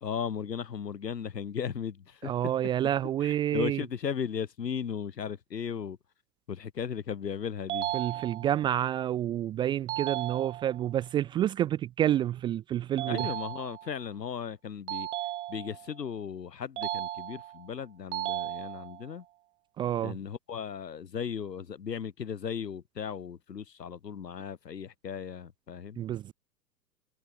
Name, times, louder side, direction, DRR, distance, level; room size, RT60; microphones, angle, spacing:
voice 1, 0.0-2.3 3.2-6.0 6.5-7.9 13.0-15.1 15.5-19.2 20.0-26.0, left 7 dB, 75° left, 1.2 m, -36 dB
voice 2, 2.2-3.8 7.9-13.3 19.8-20.1 26.0-26.3, right 11 dB, 10° right, 0.6 m, -29 dB
sound 1, 7.7-8.7 9.9-10.9 13.0-14.0 14.9-15.9 16.8-17.7 18.1-19.1, right 14 dB, 45° right, 1.2 m, -35 dB
figure-of-eight pair, 105°, 50 cm